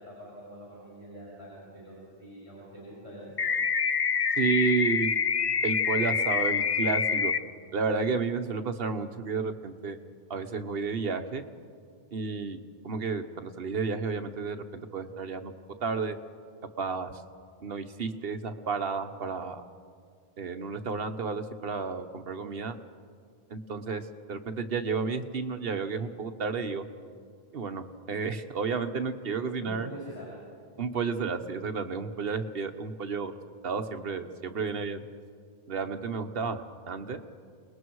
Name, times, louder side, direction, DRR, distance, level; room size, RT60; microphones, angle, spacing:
voice 1, 0.0-3.4 29.6-30.5, right 1 dB, 35° right, -6 dB, 6.9 m, -44 dB
sound 1, 3.4-7.4, left 6 dB, 40° left, 0.6 m, -26 dB
voice 2, 4.4-5.1 5.6-7.3 7.7-10.0 10.3-11.4 12.1-15.5 15.8-16.2 16.8-17.2 17.6-19.6 20.4-22.8 23.5-26.8 27.5-29.9 30.8-33.3 33.6-35.0 35.7-36.6 36.9-37.2, right 5 dB, 65° right, 8 dB, 1.3 m, -31 dB
29.0 x 20.0 x 4.7 m, 2.1 s
omnidirectional pair, 1.0 m